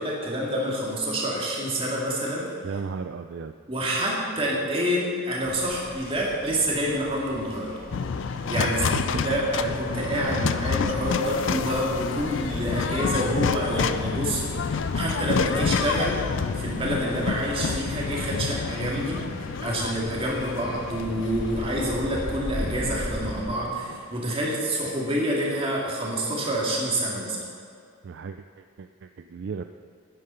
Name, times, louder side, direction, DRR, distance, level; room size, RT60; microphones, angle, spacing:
voice 1, 0.0-2.5 3.7-7.7 8.5-16.2 16.5-19.3 19.6-27.4, equal, 25° right, -3 dB, 2.3 m, -27 dB
voice 2, 2.6-3.6 8.5-8.6 9.1-9.2 10.2-10.6 28.0-29.7, right 5 dB, 55° right, 8 dB, 0.3 m, -35 dB
sound 1, 5.4-23.4, equal, 80° left, 2.9 m, -39 dB
sound 2, 7.9-24.1, left 5 dB, 60° left, 0.4 m, -29 dB
10.0 x 9.0 x 5.7 m, 2.3 s
head